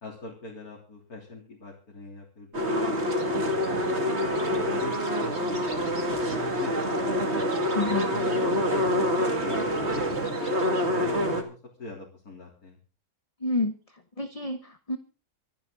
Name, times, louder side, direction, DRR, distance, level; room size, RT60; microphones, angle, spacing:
voice 1, 0.0-3.8 4.4-7.4 8.0-10.0 10.4-12.8, left 3 dB, 85° left, -2 dB, 4.0 m, -42 dB
sound 1, 2.5-11.4, equal, 45° right, 2.7 m, -26 dB
voice 2, 7.7-8.1 13.4-13.8 14.2-15.0, left 2 dB, 25° left, 8 dB, 1.1 m, -28 dB
25.5 x 10.5 x 3.9 m, 0.35 s
omnidirectional pair, 1.6 m